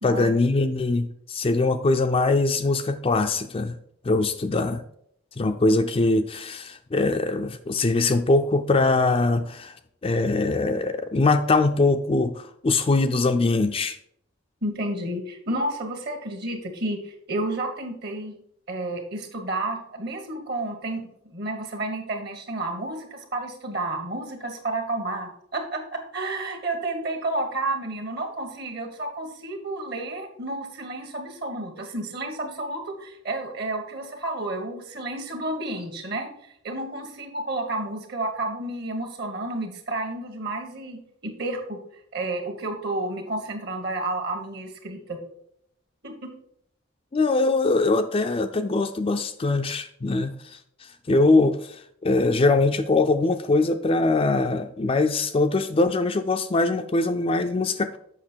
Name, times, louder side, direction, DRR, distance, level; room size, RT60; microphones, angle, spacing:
voice 1, 0.0-3.8 4.0-4.8 5.4-9.7 10.0-14.0 47.1-50.6 51.1-58.0, left 3 dB, 30° left, 6 dB, 0.4 m, -22 dB
voice 2, 14.6-18.4 18.7-36.3 36.6-41.8 42.1-45.2 46.0-46.3, right 2 dB, 55° right, 5 dB, 1.5 m, -31 dB
7.5 x 5.6 x 4.4 m, 0.68 s
head